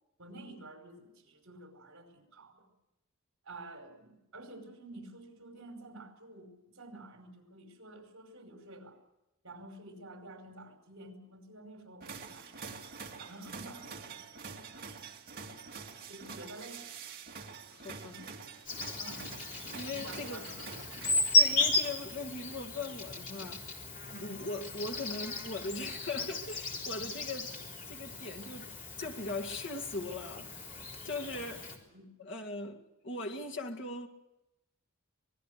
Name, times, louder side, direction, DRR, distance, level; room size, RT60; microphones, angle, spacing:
voice 1, 0.2-2.7 3.4-9.0 9.4-12.6 13.2-15.1 16.1-16.8 19.0-19.4 19.9-21.0 24.1-24.3 31.9-32.1, right 2 dB, 65° right, 5.2 m, -50 dB
sound 1, 12.0-22.4, right 5 dB, 45° right, 2.4 m, -46 dB
voice 2, 17.7-18.4 19.7-20.5 21.3-23.7 24.2-27.5 27.9-28.7 29.0-30.5 31.0-31.8 32.2-34.1, left 2 dB, 55° left, 2.1 m, -40 dB
Insect, 18.7-31.8, left 2 dB, 40° left, 3.7 m, -34 dB
26.0 x 19.5 x 6.7 m
head